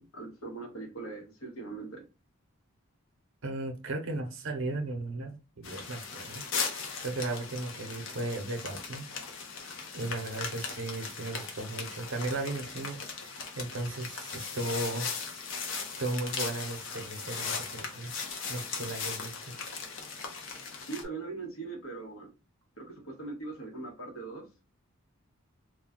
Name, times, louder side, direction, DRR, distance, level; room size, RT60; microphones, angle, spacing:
voice 1, 0.0-2.0 20.9-22.3 22.8-24.5, right 3 dB, 80° left, 1.1 m, -40 dB
voice 2, 3.4-6.5 7.0-9.1 9.9-15.1 16.0-18.1 18.5-19.6, right 2 dB, 60° right, 0.6 m, -36 dB
sound 1, 5.6-21.0, left 5 dB, 60° left, 0.7 m, -38 dB
2.4 x 2.2 x 3.6 m
head